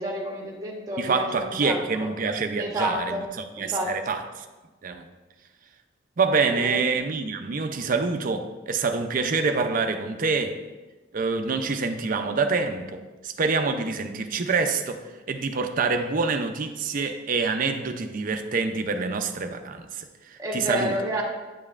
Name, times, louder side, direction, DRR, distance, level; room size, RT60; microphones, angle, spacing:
voice 1, 0.0-2.1 2.6-3.2 3.6-3.9 6.5-6.9 20.4-21.2, equal, 20° right, 1.1 m, -30 dB
voice 2, 1.0-3.1 3.6-4.3 4.8-5.1 6.2-10.6 11.1-15.0 15.3-20.9, right 4 dB, 45° right, 0.5 m, -26 dB
9.2 x 5.2 x 2.4 m
head